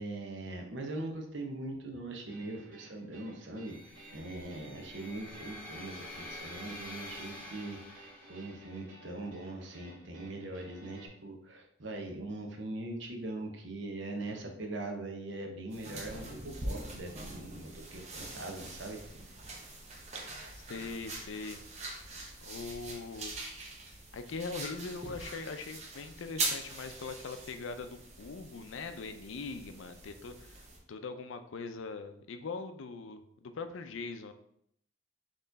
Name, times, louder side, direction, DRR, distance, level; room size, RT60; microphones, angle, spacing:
voice 1, 0.0-19.0, right 2 dB, 65° right, 3 dB, 0.9 m, -41 dB
sound 1, 2.3-11.1, right 2 dB, 85° right, 1.5 m, -56 dB
sound 2, 3.7-8.7, left 1 dB, 5° left, 1.0 m, -47 dB
sound 3, 15.7-30.8, right 2 dB, 35° right, 0.8 m, -42 dB
voice 2, 20.7-21.6 22.4-23.3 24.1-34.3, left 4 dB, 75° left, 8 dB, 0.5 m, -41 dB
4.3 x 3.1 x 4.0 m, 0.71 s
head